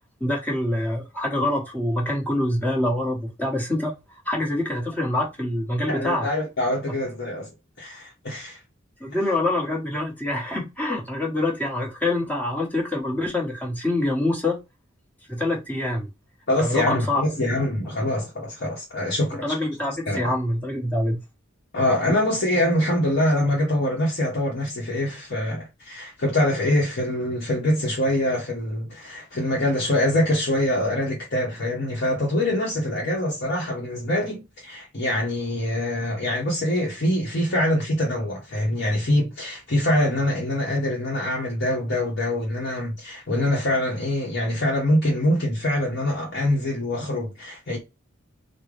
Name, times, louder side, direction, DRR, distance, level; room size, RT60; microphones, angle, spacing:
voice 1, 0.2-3.9 4.2-6.3 9.0-14.6 15.3-16.1 16.6-17.2 19.4-21.2, left 1 dB, 10° left, 1.1 m, -25 dB
voice 2, 5.9-7.5 7.8-8.6 16.5-19.6 20.1-20.2 21.7-47.8, left 1 dB, 55° left, 0.9 m, -24 dB
3.6 x 2.1 x 3.3 m
head